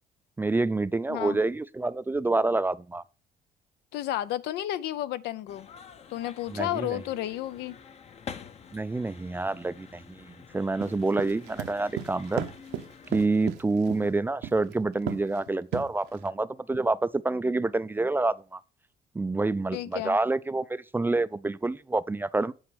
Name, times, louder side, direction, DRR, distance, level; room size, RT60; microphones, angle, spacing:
voice 1, 0.4-3.0 6.5-7.0 8.7-12.5 13.1-18.6 19.1-22.5, right 2 dB, 10° right, 0.3 m, -27 dB
voice 2, 3.9-5.7 6.1-7.8 14.0-14.1 19.7-20.2, left 13 dB, 80° left, 0.6 m, -32 dB
sound 1, 5.5-13.5, left 6 dB, 40° left, 0.7 m, -48 dB
sound 2, 10.8-14.1 14.4-14.7 15.1-15.4 15.7-16.3, right 11 dB, 80° right, 0.9 m, -34 dB
8.7 x 4.2 x 6.3 m
cardioid pair, 110°, 17 cm